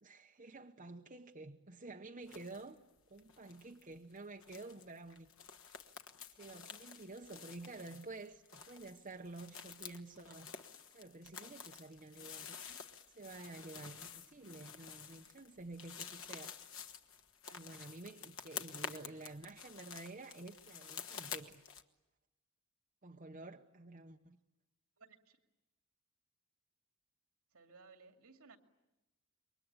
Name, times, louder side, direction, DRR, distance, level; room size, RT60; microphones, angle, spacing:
voice 1, 0.0-2.8 3.1-5.3 6.3-10.5 10.9-12.8 13.1-16.6 17.5-21.6 23.0-24.4, right 2 dB, 35° right, 0.9 m, -51 dB
sound 1, 2.2-2.7 3.0-21.8, left 7 dB, 65° left, 1.4 m, -50 dB
voice 2, 25.0-25.4 27.5-28.6, right 4 dB, 75° right, 2.5 m, -60 dB
28.0 x 23.5 x 9.0 m
head